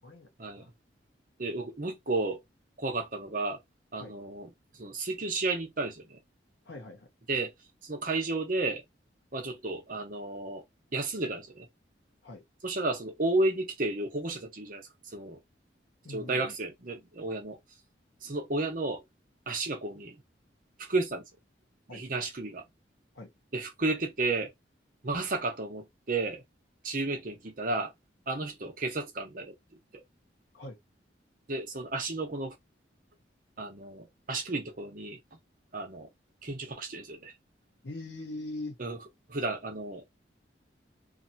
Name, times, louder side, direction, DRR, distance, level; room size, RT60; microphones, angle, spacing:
voice 1, 0.0-0.7 4.0-4.1 6.7-7.1 12.2-12.4 16.0-16.5 21.9-22.0 23.1-23.3 30.5-30.8 37.8-38.8, left 2 dB, 70° left, 0.8 m, -42 dB
voice 2, 1.4-2.4 2.8-3.6 3.9-4.5 4.8-6.2 7.3-7.5 7.8-8.8 9.3-10.6 10.9-11.7 12.6-14.8 15.1-15.4 16.1-17.6 18.2-19.0 19.5-20.2 20.8-21.2 21.9-22.6 23.5-24.5 25.0-26.4 26.8-27.9 28.3-29.5 29.9-30.0 31.5-32.5 33.6-35.2 35.7-36.1 36.4-37.3 38.8-39.0 39.3-40.1, right 2 dB, 45° right, 0.9 m, -32 dB
2.7 x 2.3 x 2.7 m
head